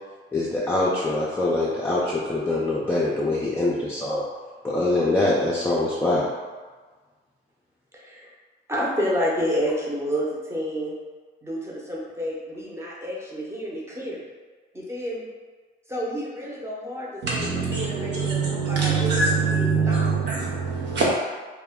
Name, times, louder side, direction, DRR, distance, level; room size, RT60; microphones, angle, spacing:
voice 1, 0.3-4.2 4.6-6.3, left 2 dB, 10° left, -6 dB, 0.4 m, -24 dB
voice 2, 7.9-8.3 8.7-10.9 11.4-14.2 14.7-15.2 15.9-20.1, equal, 15° right, -5 dB, 0.7 m, -30 dB
voice 3, 17.2-21.1, right 4 dB, 65° right, -4 dB, 0.5 m, -23 dB
2.2 x 2.1 x 3.5 m, 1.4 s
cardioid pair, 90°, 20 cm